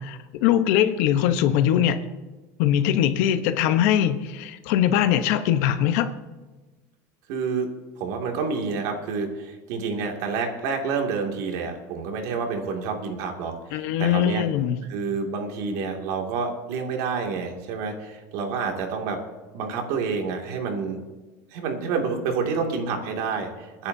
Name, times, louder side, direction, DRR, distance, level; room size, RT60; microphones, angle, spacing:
voice 1, 0.0-2.0 2.6-6.1 13.7-14.8, left 10 dB, 60° left, 9 dB, 1.0 m, -21 dB
voice 2, 7.3-7.7 8.0-14.5 14.9-19.2 19.5-21.0 21.5-23.9, right 5 dB, 60° right, 2 dB, 2.5 m, -28 dB
28.0 x 10.5 x 2.8 m, 1.2 s
cardioid pair, 165°, 9 cm